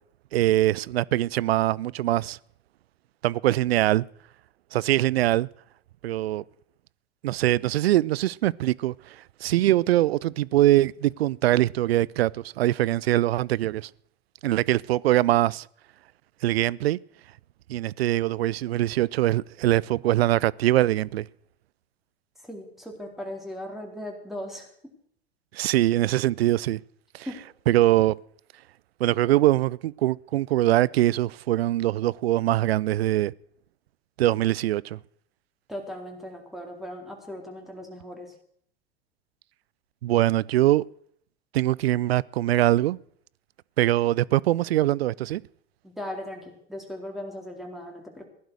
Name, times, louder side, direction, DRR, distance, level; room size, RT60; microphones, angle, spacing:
voice 1, 0.3-2.4 3.2-4.0 4.7-5.5 6.0-6.4 7.2-8.9 9.4-13.9 14.4-15.6 16.4-17.0 17.7-21.2 25.5-26.8 27.1-27.3 27.7-28.2 29.0-33.3 34.2-35.0 40.0-40.8 41.5-43.0 43.8-45.4, right 15 dB, 80° right, 0.5 m, -22 dB
voice 2, 22.5-24.7 27.3-27.4 35.7-38.3 45.8-48.3, left 1 dB, ahead, 4.0 m, -38 dB
15.5 x 11.5 x 6.4 m
hypercardioid pair, 90°, 30 cm